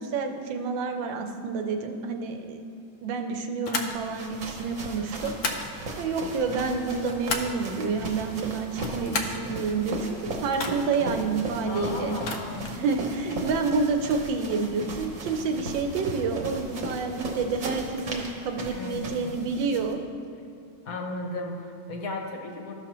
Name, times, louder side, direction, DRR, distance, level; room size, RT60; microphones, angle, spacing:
voice 1, 0.0-2.6 3.0-5.6 6.0-12.2 12.7-20.0, right 4 dB, 75° right, 5 dB, 1.3 m, -29 dB
sound 1, 3.6-4.0 5.2-5.7 6.8-7.6 8.7-9.4 10.5-11.0 12.1-12.8, left 3 dB, 80° left, 0.7 m, -33 dB
sound 2, 3.9-19.9, right 2 dB, 50° right, 1.1 m, -37 dB
voice 2, 11.6-12.8 18.7-19.4 20.8-22.7, left 2 dB, 60° left, 2 dB, 1.0 m, -35 dB
13.5 x 6.0 x 2.9 m, 2.4 s
omnidirectional pair, 2.1 m